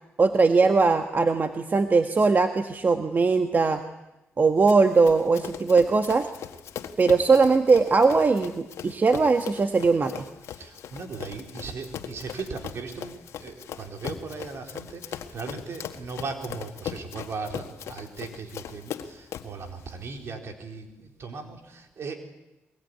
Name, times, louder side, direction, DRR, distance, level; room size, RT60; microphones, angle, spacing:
voice 1, 0.2-3.8 4.4-6.3 7.0-10.3, right 4 dB, 40° right, 7 dB, 1.6 m, -20 dB
Run, 4.7-19.6, left 9 dB, 80° left, 1.6 m, -39 dB
voice 2, 10.5-22.2, right 4 dB, 65° right, 4 dB, 4.1 m, -38 dB
23.5 x 22.0 x 9.7 m, 0.98 s
cardioid pair, 65°, 5 cm